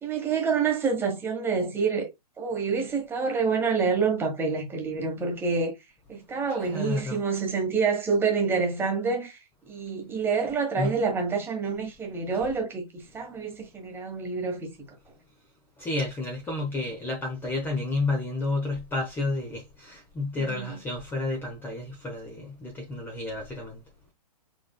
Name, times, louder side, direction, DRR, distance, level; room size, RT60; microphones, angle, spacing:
voice 1, 0.0-2.1 2.4-5.7 6.1-9.4 9.7-14.7 20.5-20.8, right 5 dB, 10° right, 1.3 m, -27 dB
voice 2, 6.5-7.2 10.8-10.9 15.8-23.8, left 2 dB, 10° left, 0.8 m, -31 dB
6.0 x 3.8 x 2.2 m
figure-of-eight pair, 115°, 20 cm